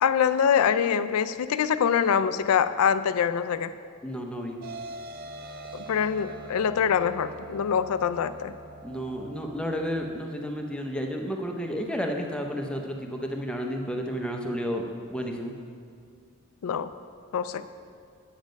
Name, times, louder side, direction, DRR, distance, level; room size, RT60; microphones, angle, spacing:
voice 1, 0.0-3.7 5.7-8.5 16.6-16.9 17.3-17.7, left 7 dB, 90° left, 13 dB, 0.4 m, -24 dB
voice 2, 4.0-4.6 8.8-14.8 15.1-15.5, equal, 5° left, 2 dB, 0.7 m, -31 dB
sound 1, 4.6-10.2, right 2 dB, 45° right, 0.5 m, -43 dB
9.2 x 7.3 x 5.2 m, 2.2 s
head